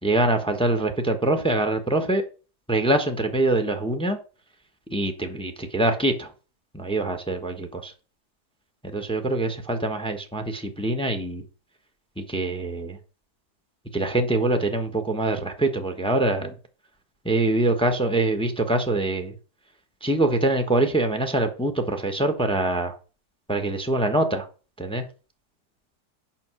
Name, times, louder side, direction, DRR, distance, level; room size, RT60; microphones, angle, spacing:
voice 1, 0.0-2.2 2.7-4.2 4.9-6.3 6.7-7.9 8.8-11.4 12.2-13.0 13.9-16.5 17.2-19.3 20.0-23.0 23.5-24.5 24.8-25.0, right 2 dB, 5° left, 1.1 m, -24 dB
8.9 x 6.3 x 6.2 m
omnidirectional pair, 1.8 m